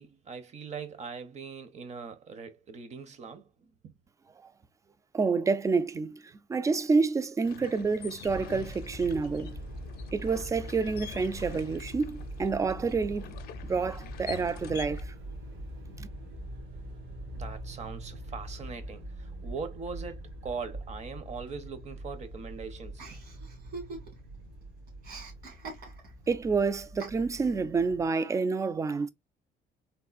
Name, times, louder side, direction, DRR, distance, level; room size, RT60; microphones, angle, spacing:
voice 1, 0.0-3.9 17.4-23.2, right 5 dB, 40° right, 0.8 m, -41 dB
voice 2, 5.1-6.2 6.5-9.6 10.1-13.3 13.7-15.0 16.0-16.1 26.3-29.1, right 4 dB, 20° right, 0.3 m, -28 dB
sound 1, 7.4-15.0, left 11 dB, 65° left, 0.5 m, -46 dB
sound 2, 8.2-28.1, right 1 dB, 85° right, 1.7 m, -43 dB
Chuckle chortle, 23.0-24.4 24.6-26.3 27.0-27.6, right 3 dB, 65° right, 1.8 m, -44 dB
3.5 x 2.3 x 2.4 m
cardioid pair, 110°, 17 cm